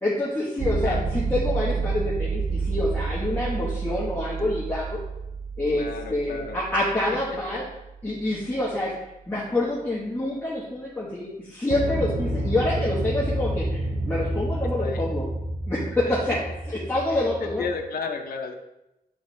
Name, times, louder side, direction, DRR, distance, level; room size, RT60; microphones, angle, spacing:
voice 1, 0.0-5.0 5.6-7.6 8.0-8.9 9.3-15.3 15.7-16.4 16.7-17.6, left 1 dB, 10° left, -7 dB, 1.1 m, -27 dB
sound 1, 0.6-8.4 11.7-17.8, right 3 dB, 40° right, 0.7 m, -30 dB
voice 2, 5.7-6.6 7.5-7.6 14.8-15.0 16.1-16.4 17.1-18.5, left 5 dB, 75° left, 4 dB, 0.5 m, -33 dB
8.6 x 3.9 x 3.1 m, 0.93 s
wide cardioid pair, 145°, 16 cm